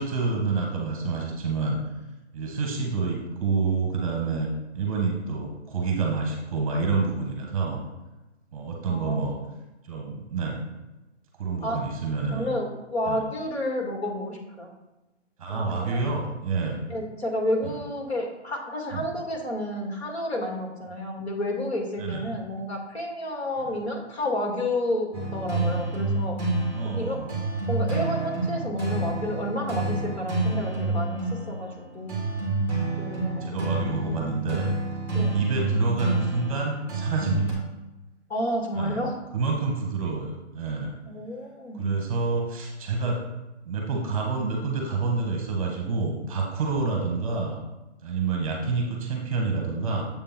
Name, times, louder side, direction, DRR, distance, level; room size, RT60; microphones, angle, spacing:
voice 1, 0.0-1.8 2.3-4.5 4.7-7.8 8.5-9.4 9.8-10.6 11.4-12.5 13.1-13.2 15.4-16.8 17.6-17.7 18.9-19.1 22.0-22.4 26.7-27.3 33.4-34.7 35.3-37.6 38.7-39.0 39.3-40.9 41.7-43.2 43.6-47.6 48.0-50.0, right 4 dB, 30° right, 1 dB, 1.1 m, -28 dB
voice 2, 8.8-9.3 11.6-11.8 12.3-14.7 15.5-16.1 16.9-26.4 26.8-27.2 27.7-32.2 32.8-33.6 35.1-35.3 38.3-39.1 41.1-42.0, left 1 dB, 60° left, 0 dB, 2.2 m, -30 dB
sound 1, 25.1-37.5, right 2 dB, 5° left, 1.4 m, -28 dB
7.3 x 3.5 x 5.8 m, 1.0 s
hypercardioid pair, 160°, 36 cm